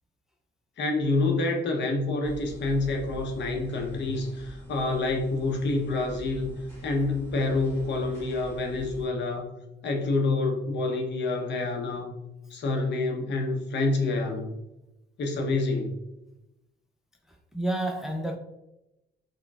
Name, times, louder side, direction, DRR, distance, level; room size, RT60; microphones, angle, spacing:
voice 1, 0.8-6.5 6.8-9.5 9.8-12.1 12.5-14.5 15.2-15.9, left 2 dB, 65° left, 0.8 m, -27 dB
sound 1, 2.2-9.1, right 1 dB, 15° left, 1.4 m, -45 dB
voice 2, 17.3-18.4, right 1 dB, ahead, 0.4 m, -30 dB
4.8 x 2.2 x 2.3 m
cardioid pair, 90°, 20 cm